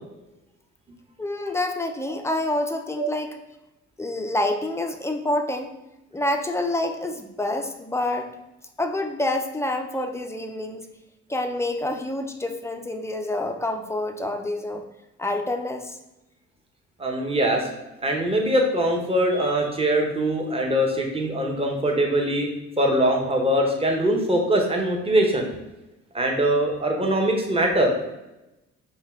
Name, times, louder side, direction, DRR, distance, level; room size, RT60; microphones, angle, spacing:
voice 1, 1.2-3.4 4.0-5.7 6.1-8.3 8.8-10.9 11.3-14.8 15.2-16.0, left 1 dB, 10° left, 5 dB, 0.4 m, -27 dB
voice 2, 17.0-17.7 18.0-22.5 22.8-25.5 26.1-27.9, right 1 dB, 20° right, 1 dB, 0.9 m, -22 dB
5.4 x 2.3 x 3.6 m, 0.97 s
cardioid pair, 90°, 30 cm